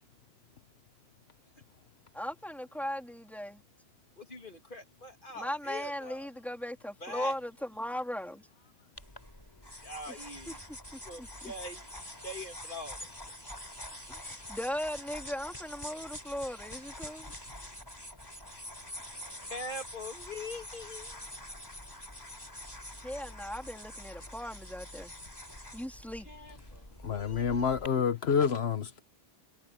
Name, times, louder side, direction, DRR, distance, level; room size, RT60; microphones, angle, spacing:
voice 1, 2.1-3.6 5.3-8.4 10.1-10.5 10.9-11.5 14.1-17.3 23.0-25.1 25.7-26.3, equal, ahead, 3.7 m, -38 dB
voice 2, 4.2-6.3 7.0-7.3 9.6-10.6 11.0-13.1 19.5-21.2 26.3-27.7, left 1 dB, 55° left, 3.1 m, -43 dB
sound 1, 9.0-27.9, left 1 dB, 20° left, 4.8 m, -46 dB
voice 3, 27.0-29.0, left 6 dB, 80° left, 1.2 m, -28 dB
omnidirectional pair, 1.1 m